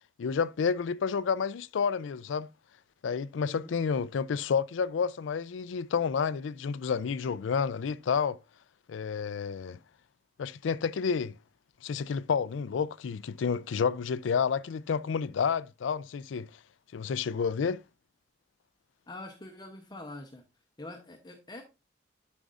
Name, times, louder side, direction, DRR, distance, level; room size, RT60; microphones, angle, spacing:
voice 1, 0.2-2.5 3.0-8.4 8.9-9.8 10.4-11.4 11.8-16.5 16.9-17.8, left 6 dB, 90° left, 0.4 m, -30 dB
voice 2, 3.4-3.7 19.1-20.4 20.8-21.6, left 2 dB, 20° left, 0.8 m, -44 dB
11.5 x 5.2 x 2.5 m
head